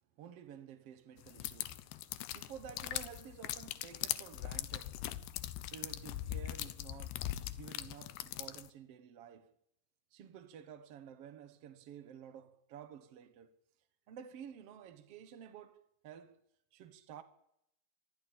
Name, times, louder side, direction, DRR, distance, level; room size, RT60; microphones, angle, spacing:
voice 1, 0.2-1.9 2.2-5.0 5.7-7.3 7.6-9.5 10.1-13.6 14.1-16.4 16.7-17.2, right 8 dB, 75° right, 1.4 m, -52 dB
sound 1, 1.3-8.7, left 14 dB, 90° left, 3.2 m, -41 dB
24.5 x 15.5 x 8.9 m
omnidirectional pair, 4.7 m